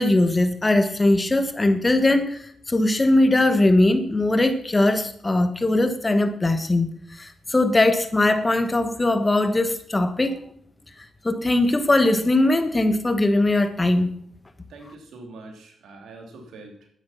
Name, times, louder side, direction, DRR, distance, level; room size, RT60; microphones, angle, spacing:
voice 1, 0.0-10.4 11.2-14.1, left 2 dB, 25° left, 1.4 m, -20 dB
voice 2, 14.7-16.9, right 2 dB, 85° right, 3.1 m, -43 dB
11.5 x 9.9 x 5.8 m
cardioid pair, 70°, 0 cm